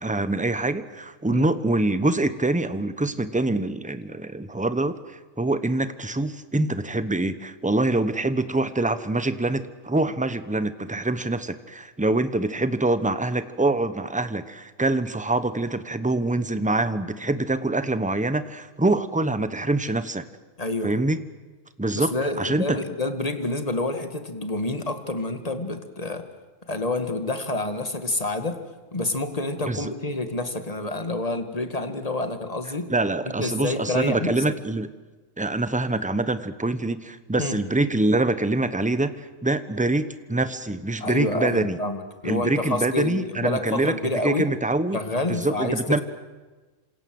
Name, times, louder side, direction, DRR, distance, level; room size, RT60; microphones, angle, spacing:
voice 1, 0.0-20.3 20.8-21.2 21.8-22.8 29.7-29.9 32.9-34.9 35.4-41.8 42.2-43.9 44.2-45.0 45.3-46.0, right 2 dB, 5° right, 12 dB, 1.0 m, -25 dB
voice 2, 20.6-20.9 21.9-26.3 26.7-28.6 28.9-32.9 33.2-34.5 37.4-37.6 41.0-44.5 44.9-46.0, left 2 dB, 30° left, 7 dB, 2.1 m, -28 dB
27.5 x 26.5 x 7.8 m, 1.2 s
omnidirectional pair, 1.4 m